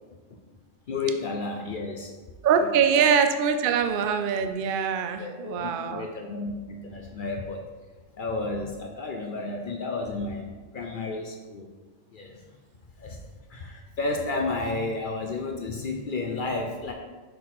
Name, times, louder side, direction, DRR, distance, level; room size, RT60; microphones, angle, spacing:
voice 1, 0.9-2.1 2.6-3.0 5.1-7.6 8.1-10.5 10.7-11.7 12.1-12.4 13.0-16.9, left 3 dB, 55° left, 2 dB, 0.6 m, -32 dB
voice 2, 2.4-6.1, right 7 dB, 65° right, 7 dB, 0.5 m, -23 dB
6.2 x 4.5 x 4.1 m, 1.3 s
omnidirectional pair, 1.4 m